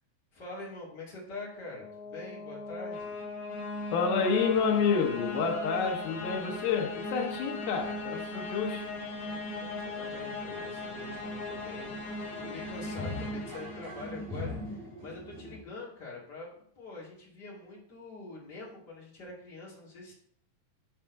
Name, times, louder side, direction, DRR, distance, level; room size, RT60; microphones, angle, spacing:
voice 1, 0.3-3.2 9.2-20.1, left 3 dB, 35° left, 2.2 m, -45 dB
sound 1, 1.5-14.5, left 2 dB, 65° left, 1.5 m, -38 dB
voice 2, 3.9-8.9, left 5 dB, 85° left, 2.9 m, -29 dB
sound 2, 10.5-15.6, left 1 dB, 65° right, 4.8 m, -42 dB
9.9 x 3.6 x 4.5 m
omnidirectional pair, 4.2 m